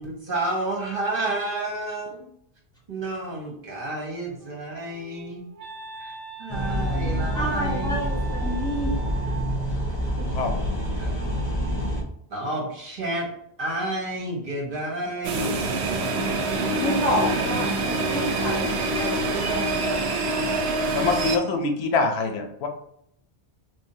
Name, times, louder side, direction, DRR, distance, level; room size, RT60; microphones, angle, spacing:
voice 1, 0.0-2.3 2.9-5.4 6.0-6.1 6.4-8.0 11.0-11.2 12.3-13.2 13.6-15.7, right 2 dB, 55° right, -2 dB, 1.3 m, -30 dB
Wind instrument woodwind instrument, 4.4-9.7, right 5 dB, 40° right, 0.7 m, -41 dB
sound 1, 6.5-12.0, equal, 45° left, 0.9 m, -27 dB
voice 2, 6.9-9.3 16.8-19.7, equal, 5° left, -4 dB, 0.8 m, -29 dB
voice 3, 10.2-10.8 20.9-22.7, left 3 dB, 80° left, 4 dB, 0.9 m, -25 dB
sound 2, 15.2-21.4, right 2 dB, 80° right, 0.8 m, -25 dB
3.7 x 2.6 x 2.7 m, 0.72 s
omnidirectional pair, 1.1 m